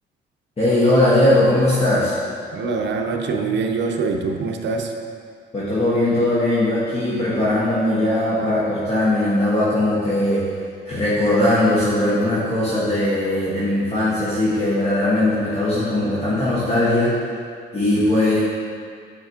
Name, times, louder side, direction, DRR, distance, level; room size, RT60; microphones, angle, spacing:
voice 1, 0.6-2.2 5.5-10.5 10.8-17.2 17.7-18.4, left 1 dB, 30° left, -9 dB, 1.3 m, -19 dB
voice 2, 2.5-4.9, right 4 dB, 65° right, 3 dB, 0.7 m, -24 dB
9.3 x 5.0 x 2.8 m, 2.2 s
cardioid pair, 90°, 20 cm